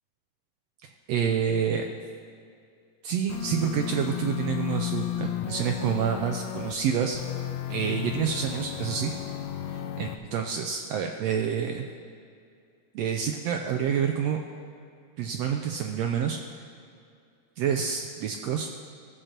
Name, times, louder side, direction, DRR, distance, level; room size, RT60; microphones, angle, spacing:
voice 1, 1.1-1.9 3.0-7.2 7.7-9.1 9.7-11.9 12.9-14.4 15.2-16.4 17.6-18.7, right 8 dB, 80° right, 3 dB, 1.5 m, -28 dB
sound 1, 3.3-6.8 7.1-10.2, left 12 dB, 80° left, 1.7 m, -33 dB
14.5 x 6.5 x 4.4 m, 2.4 s
omnidirectional pair, 3.4 m